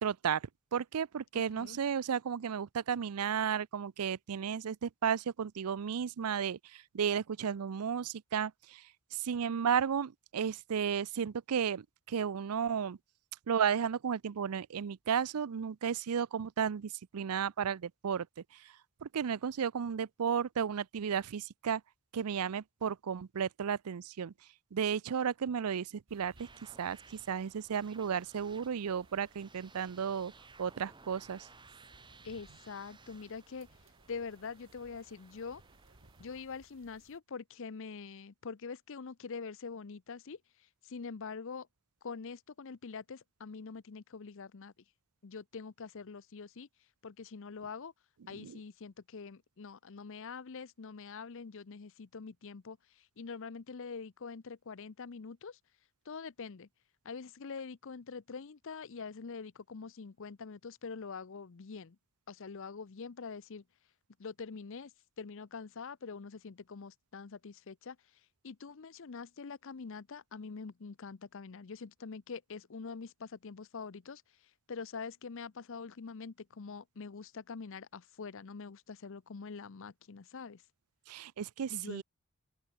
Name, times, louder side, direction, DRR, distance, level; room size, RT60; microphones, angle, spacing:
voice 1, 0.0-8.8 9.1-13.0 13.5-18.3 18.5-18.7 19.0-21.8 22.1-24.3 24.7-26.5 26.8-30.3 30.6-31.5 48.4-48.6 81.1-82.0, right 7 dB, 85° right, 0.5 m, -33 dB
voice 2, 1.3-1.8 32.2-33.7 34.1-35.6 36.2-40.4 40.8-41.7 42.0-44.7 45.2-46.7 47.0-47.9 48.3-55.6 56.1-56.7 57.0-62.0 62.3-63.6 64.2-68.0 68.4-74.2 74.7-80.6 81.7-82.0, left 5 dB, 60° left, 0.6 m, -44 dB
sound 1, 26.1-37.2, right 2 dB, 60° right, 2.2 m, -64 dB
sound 2, 26.4-36.4, right 3 dB, 20° right, 3.5 m, -59 dB
open air
head